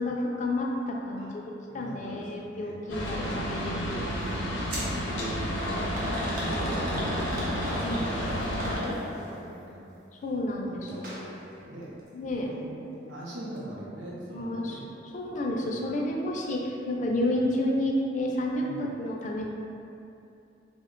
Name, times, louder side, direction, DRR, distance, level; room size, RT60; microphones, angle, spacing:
voice 1, 0.0-3.7 6.4-7.2 7.8-8.2 8.8-9.0 10.2-11.0 12.1-12.5 14.3-14.8 15.1-19.4, left 1 dB, 40° left, -1 dB, 0.3 m, -30 dB
voice 2, 1.7-4.1 4.8-5.5 7.8-9.8 10.8-11.3 11.6-11.9 12.3-14.8 15.5-15.8 18.6-18.9, right 1 dB, 85° right, -6 dB, 0.6 m, -43 dB
sound 1, 2.9-8.8, equal, 90° left, 0.6 m, -31 dB
sound 2, 4.7-4.9 5.6-9.3 10.9-11.2 11.5-11.6 12.5-12.6, equal, 50° right, 0.7 m, -33 dB
3.0 x 2.1 x 3.6 m, 2.7 s
head